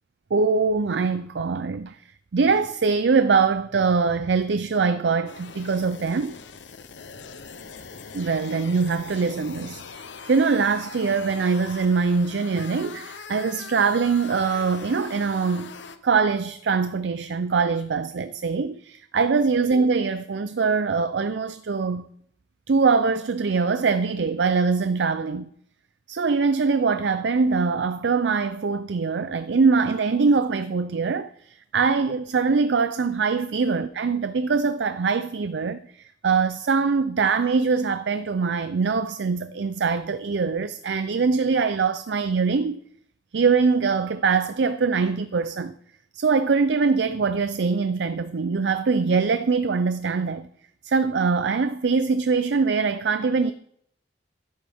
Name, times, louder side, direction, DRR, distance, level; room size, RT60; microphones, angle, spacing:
voice 1, 0.3-2.0 2.3-6.4 8.1-15.8 16.0-22.1 22.7-25.5 26.1-42.8 43.3-45.7 46.1-50.5 50.8-53.5, right 4 dB, 70° right, 0.5 m, -23 dB
sound 1, 5.3-16.0, left 5 dB, 85° left, 0.8 m, -41 dB
13.0 x 11.0 x 3.6 m
head